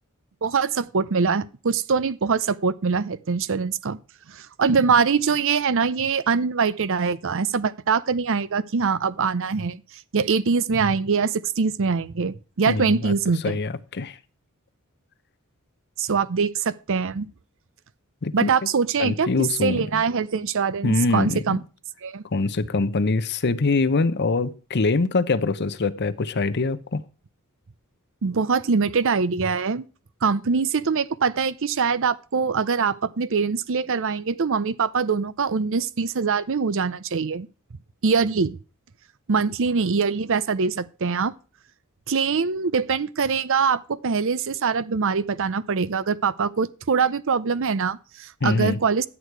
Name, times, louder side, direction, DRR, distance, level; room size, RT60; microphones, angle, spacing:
voice 1, 0.4-4.0 4.3-9.8 10.1-13.6 16.0-17.3 18.3-19.3 19.6-21.6 22.0-22.2 28.2-29.9 30.2-37.5 38.0-38.6 39.3-41.3 42.1-49.1, right 5 dB, 60° right, 0.6 m, -23 dB
voice 2, 12.7-13.1 13.4-14.2 18.2-18.5 19.0-20.0 20.8-21.4 22.3-27.0 48.4-48.8, left 3 dB, 50° left, 0.7 m, -24 dB
11.0 x 8.3 x 4.6 m
head